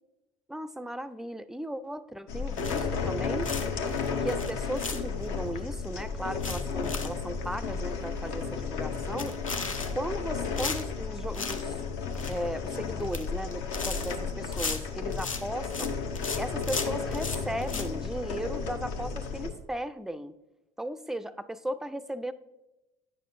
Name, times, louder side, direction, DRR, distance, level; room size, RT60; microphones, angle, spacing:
voice 1, 0.5-3.5 4.2-9.4 9.9-11.8 12.3-16.0 16.4-20.4 20.8-22.3, right 1 dB, 5° right, 14 dB, 0.3 m, -36 dB
sound 1, 2.3-19.5, left 5 dB, 60° left, 0.7 m, -33 dB
sound 2, 2.6-3.1 3.4-5.4 5.8-5.9 6.2-7.2 7.5-7.6 8.0-8.1 8.3-8.6 9.1-10.2 10.6-11.6 11.9-12.5 12.9-13.3 13.5-15.9 16.1-17.9, left 4 dB, 90° left, 0.4 m, -36 dB
9.7 x 6.5 x 2.5 m, 0.98 s
figure-of-eight pair, 55°, 17 cm